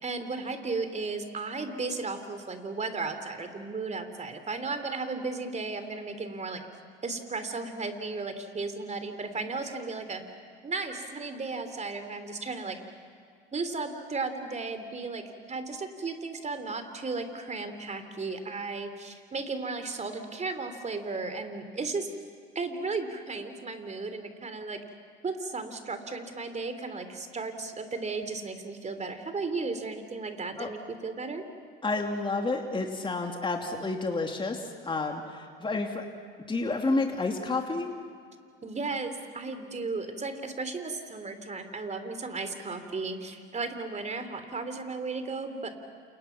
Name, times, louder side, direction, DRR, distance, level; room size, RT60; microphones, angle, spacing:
voice 1, 0.0-6.6 7.0-10.2 10.6-12.8 13.5-22.1 22.5-24.8 25.2-31.4 38.6-45.7, right 3 dB, 25° right, 8 dB, 3.4 m, -35 dB
voice 2, 31.8-36.1 36.5-37.9, left 3 dB, 15° left, 3 dB, 2.6 m, -30 dB
30.0 x 28.5 x 6.0 m, 2.1 s
hypercardioid pair, 75°, 30 cm